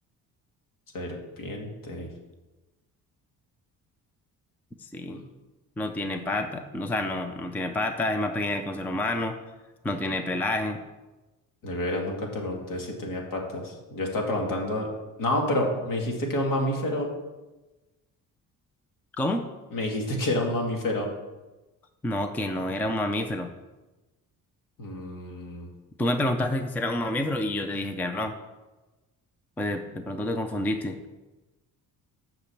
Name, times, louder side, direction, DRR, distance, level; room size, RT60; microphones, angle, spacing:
voice 1, 0.9-2.1 5.1-5.2 11.6-14.9 15.2-17.1 19.7-21.1 24.8-25.7, left 1 dB, 70° left, 1 dB, 2.2 m, -29 dB
voice 2, 4.8-5.2 5.8-9.4 9.8-10.8 19.2-19.4 22.0-23.5 26.0-28.4 29.6-31.0, left 1 dB, 5° left, 7 dB, 0.4 m, -28 dB
8.4 x 6.0 x 7.2 m, 1.1 s
cardioid pair, 180°, 34 cm